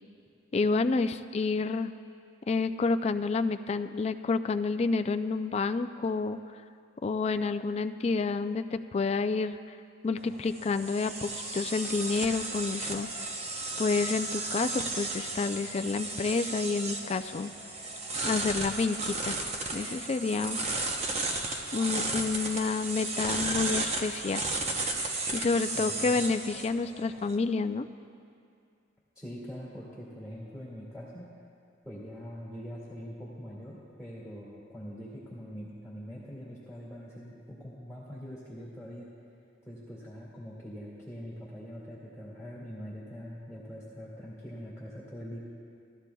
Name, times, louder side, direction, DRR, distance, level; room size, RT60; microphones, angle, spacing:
voice 1, 0.5-1.9 2.5-6.4 7.0-9.8 10.0-13.3 13.8-17.5 18.2-19.4 19.7-20.6 21.7-24.5 25.3-27.9, left 4 dB, 35° left, 9 dB, 0.3 m, -29 dB
sound 1, 10.2-27.4, right 2 dB, 35° right, 0.8 m, -34 dB
voice 2, 25.7-26.2 29.2-31.3 31.8-39.1 39.6-45.4, equal, 10° right, -7 dB, 2.1 m, -43 dB
18.0 x 13.5 x 2.3 m, 2.4 s
head